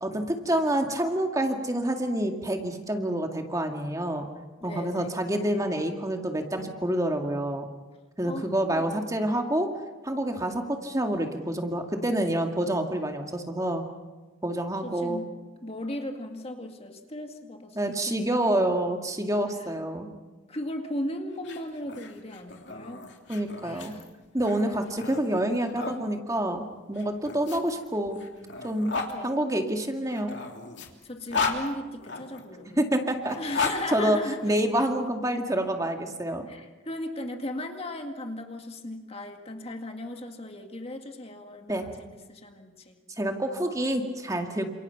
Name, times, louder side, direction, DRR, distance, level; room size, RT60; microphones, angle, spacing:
voice 1, 0.0-4.3 4.6-7.6 8.2-9.7 10.0-13.8 14.4-15.2 17.8-20.1 23.3-23.9 24.3-28.2 28.6-28.9 29.2-30.4 32.8-36.5 41.7-41.8 43.2-44.7, right 1 dB, 15° right, 4 dB, 2.1 m, -27 dB
voice 2, 4.6-5.2 8.2-9.0 14.8-15.3 15.6-18.6 20.5-23.1 23.6-24.0 29.1-29.3 31.0-32.8 33.4-34.4 36.5-43.0, left 1 dB, 30° left, 4 dB, 2.0 m, -37 dB
sound 1, 21.3-26.0 26.9-29.1 30.1-32.4 33.2-34.9, left 4 dB, 60° left, 3.1 m, -34 dB
29.5 x 27.5 x 5.9 m, 1.2 s
head